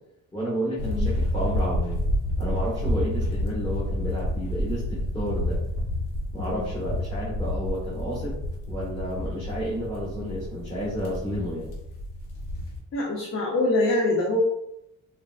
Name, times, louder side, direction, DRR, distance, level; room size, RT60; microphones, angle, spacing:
voice 1, 0.3-1.9 2.4-5.6 6.3-8.3 8.7-11.7, equal, 20° left, -8 dB, 1.2 m, -31 dB
sound 1, 0.8-12.8, left 1 dB, 85° left, 0.9 m, -29 dB
voice 2, 12.9-14.4, left 2 dB, 45° left, -3 dB, 0.6 m, -25 dB
3.6 x 2.3 x 2.3 m, 0.83 s
cardioid pair, 90°, 30 cm